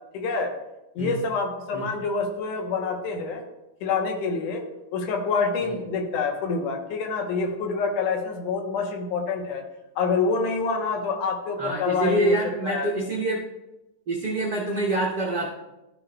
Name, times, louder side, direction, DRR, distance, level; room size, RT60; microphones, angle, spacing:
voice 1, 0.1-0.5 1.0-3.4 3.8-4.6 4.9-9.6 10.0-12.4 12.6-12.9, left 4 dB, 90° left, 3 dB, 2.6 m, -26 dB
voice 2, 11.6-13.4 14.1-15.5, right 2 dB, 55° right, -3 dB, 1.1 m, -26 dB
13.5 x 6.4 x 2.2 m, 0.98 s
omnidirectional pair, 3.5 m